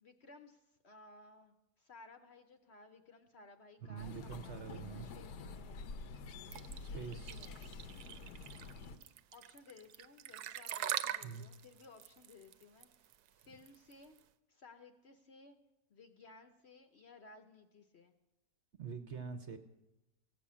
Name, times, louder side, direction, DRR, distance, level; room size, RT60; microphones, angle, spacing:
voice 1, 0.0-5.9 6.5-7.6 9.3-13.1 13.4-14.2 14.5-15.6 15.9-18.1, left 3 dB, 55° left, 7 dB, 0.9 m, -59 dB
voice 2, 3.8-5.1 6.9-7.5 11.2-11.5 18.8-19.6, right 6 dB, 55° right, 6 dB, 0.9 m, -45 dB
sound 1, 4.0-9.0, left 4 dB, 80° left, 1.3 m, -48 dB
sound 2, 6.5-14.2, right 11 dB, 80° right, 1.1 m, -42 dB
16.0 x 6.2 x 8.5 m, 0.96 s
omnidirectional pair, 1.7 m